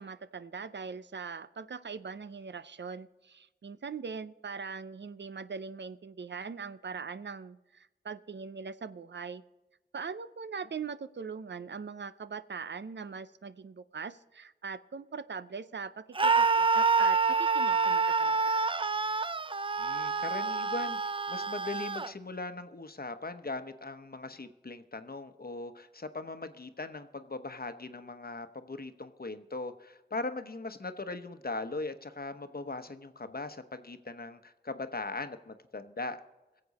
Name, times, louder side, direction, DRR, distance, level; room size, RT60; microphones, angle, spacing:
voice 1, 0.0-9.4 9.9-18.6, right 5 dB, 85° right, 14 dB, 0.5 m, -41 dB
Screaming, 16.2-22.1, right 4 dB, 30° right, 0.4 m, -27 dB
voice 2, 19.8-36.2, left 3 dB, 60° left, 9 dB, 0.9 m, -39 dB
22.0 x 7.8 x 4.1 m, 1.1 s
wide cardioid pair, 45°, 18 cm